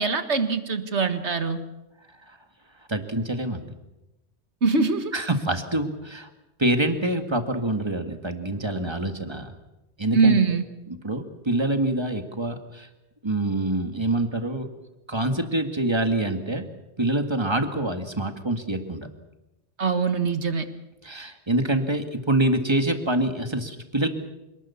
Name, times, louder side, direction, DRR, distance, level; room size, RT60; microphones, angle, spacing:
voice 1, 0.0-1.6 4.6-5.1 10.1-10.7 19.8-20.6, right 4 dB, 80° right, 9 dB, 2.0 m, -22 dB
voice 2, 2.9-3.7 5.1-6.3 6.6-9.5 10.0-10.4 11.0-12.9 13.2-14.7 15.1-16.6 17.0-19.1 21.0-24.1, right 1 dB, 25° right, 6 dB, 2.0 m, -25 dB
27.5 x 19.5 x 7.1 m, 0.99 s
omnidirectional pair, 1.1 m